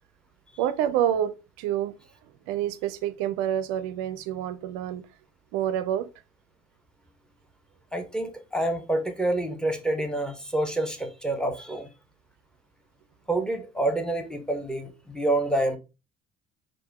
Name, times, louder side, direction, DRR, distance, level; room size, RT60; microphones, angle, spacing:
voice 1, 0.6-1.9 2.5-5.0 5.5-6.1, right 10 dB, 70° right, 0.5 m, -27 dB
voice 2, 7.9-11.9 13.3-15.8, right 1 dB, 5° left, 1.1 m, -27 dB
4.5 x 2.5 x 4.6 m
hypercardioid pair, 55°, 29 cm